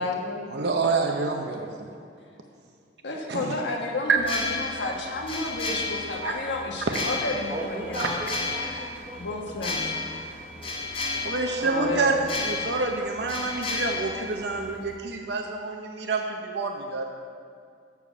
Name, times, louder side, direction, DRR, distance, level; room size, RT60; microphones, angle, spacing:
voice 1, 0.0-0.4 3.0-8.2 9.1-9.9 11.6-12.2, left 2 dB, 75° left, 1 dB, 1.3 m, -31 dB
voice 2, 0.5-1.9 3.3-3.6 4.1-4.2 6.2-6.3 11.2-17.1, right 4 dB, 65° right, 2 dB, 0.7 m, -27 dB
sound 1, 4.2-15.0, left 3 dB, 30° left, 0.8 m, -33 dB
voice 3, 7.5-9.3 9.7-11.6, right 1 dB, 25° right, -4 dB, 0.9 m, -39 dB
7.0 x 6.8 x 7.1 m, 2.3 s
head